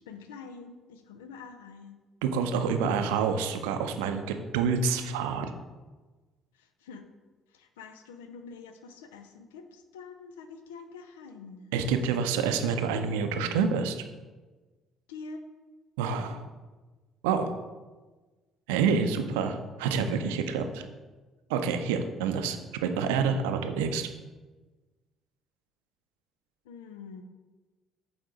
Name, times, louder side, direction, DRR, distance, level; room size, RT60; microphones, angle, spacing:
voice 1, 0.0-2.0 6.5-7.0 7.5-11.7 15.1-15.4 26.6-27.2, left 5 dB, 80° left, 8 dB, 0.5 m, -46 dB
voice 2, 2.2-5.5 11.7-14.0 16.0-16.5 17.2-17.5 18.7-20.9 21.5-24.1, right 6 dB, 75° right, 7 dB, 0.5 m, -28 dB
8.0 x 3.5 x 3.8 m, 1.3 s
hypercardioid pair, 50°, 0 cm